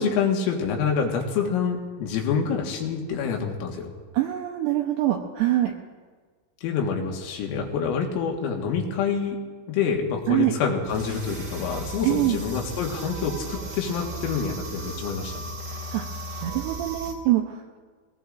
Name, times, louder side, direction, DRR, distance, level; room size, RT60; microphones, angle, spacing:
voice 1, 0.0-3.9 6.6-9.4 9.7-15.4, left 6 dB, 90° left, 1 dB, 4.2 m, -27 dB
voice 2, 4.1-5.7 10.3-10.5 12.0-12.4 15.7-17.8, right 14 dB, 85° right, 2 dB, 2.4 m, -25 dB
sound 1, 10.8-17.1, right 2 dB, 35° right, 1.1 m, -36 dB
22.0 x 18.5 x 2.5 m, 1.5 s
omnidirectional pair, 5.8 m